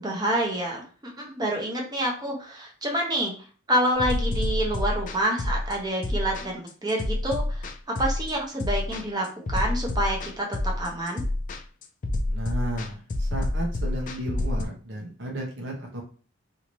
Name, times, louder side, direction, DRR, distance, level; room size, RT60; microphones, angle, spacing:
voice 1, 0.0-3.3 3.7-11.2, right 1 dB, 20° right, -1 dB, 0.8 m, -28 dB
sound 1, 4.0-14.6, left 1 dB, 40° left, 0.4 m, -28 dB
voice 2, 12.3-16.0, right 1 dB, 60° right, -1 dB, 0.9 m, -33 dB
2.8 x 2.6 x 3.0 m, 0.40 s
head